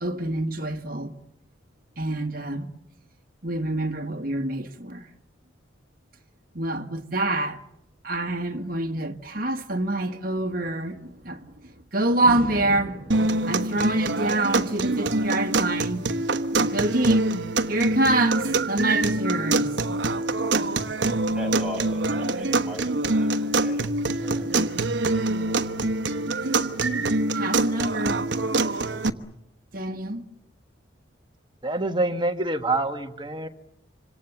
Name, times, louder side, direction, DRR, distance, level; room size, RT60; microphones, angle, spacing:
voice 1, 0.0-1.1 2.0-2.7 3.4-5.0 6.6-7.6 8.0-11.0 11.3-11.4 11.9-16.0 16.7-17.3 17.7-19.7 27.3-28.2 29.7-30.2, right 2 dB, 45° right, 1.6 m, -26 dB
sound 1, 13.1-29.1, right 2 dB, 65° right, 1.1 m, -25 dB
voice 2, 21.3-25.7, equal, 5° right, 7.3 m, -39 dB
voice 3, 31.6-33.5, right 2 dB, 25° right, 1.5 m, -26 dB
27.0 x 26.0 x 7.2 m
head